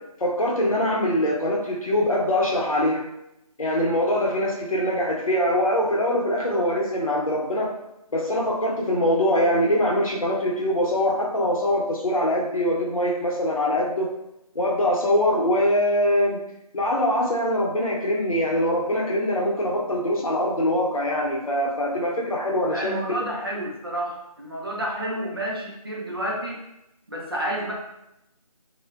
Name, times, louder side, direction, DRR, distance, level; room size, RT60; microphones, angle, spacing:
voice 1, 0.2-3.0 3.6-7.7 8.1-14.1 14.5-16.4 16.7-23.2, left 1 dB, 60° left, -2 dB, 0.7 m, -23 dB
voice 2, 22.7-26.6 27.1-27.7, right 1 dB, 40° right, -3 dB, 0.4 m, -30 dB
2.6 x 2.1 x 2.3 m, 0.87 s
figure-of-eight pair, 170°, 20 cm